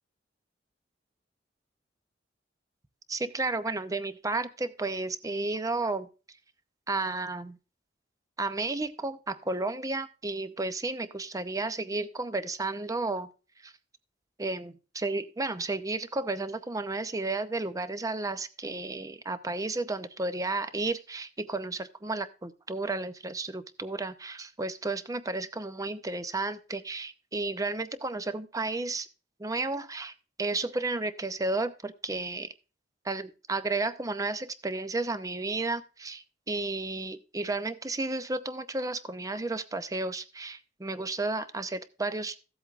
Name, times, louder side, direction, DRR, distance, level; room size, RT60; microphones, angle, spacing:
voice 1, 3.1-6.1 6.9-7.6 8.4-13.3 13.6-13.7 14.4-29.1 29.4-30.1 30.4-32.5 33.0-42.4, right 3 dB, 20° right, 12 dB, 0.6 m, -32 dB
15.0 x 7.9 x 2.5 m, 0.32 s
head